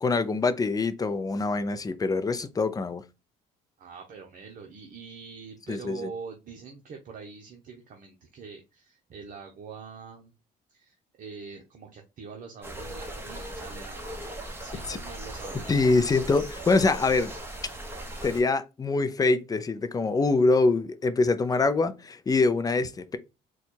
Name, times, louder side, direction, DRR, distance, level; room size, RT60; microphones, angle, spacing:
voice 1, 0.0-3.0 5.7-6.1 14.9-15.0 15.7-17.3 18.2-23.2, left 3 dB, 20° left, 0.6 m, -24 dB
voice 2, 3.8-10.3 10.7-14.3 14.6-15.8, right 5 dB, 50° right, 0.9 m, -44 dB
sound 1, 12.6-18.4, right 1 dB, 15° right, 1.2 m, -38 dB
4.1 x 2.4 x 4.4 m
cardioid pair, 110°, 17 cm